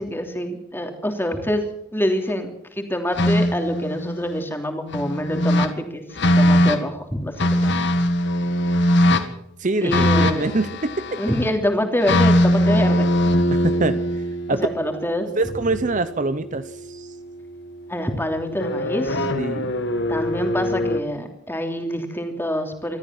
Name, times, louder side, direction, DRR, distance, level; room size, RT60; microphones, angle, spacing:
voice 1, 0.0-1.6 1.9-7.7 9.8-10.6 11.2-13.1 14.5-15.3 17.9-19.3 20.1-23.0, equal, 10° left, 4 dB, 3.0 m, -26 dB
sound 1, 3.1-4.4 4.9-5.7 6.2-6.8 7.4-9.3 9.9-11.5 12.0-16.1 18.6-21.0, left 1 dB, 55° left, 1.8 m, -21 dB
voice 2, 9.6-11.2 13.5-14.0 14.5-14.7 15.4-17.1 19.3-19.7, right 2 dB, 35° right, 12 dB, 0.8 m, -24 dB
25.0 x 14.0 x 7.6 m, 0.75 s
head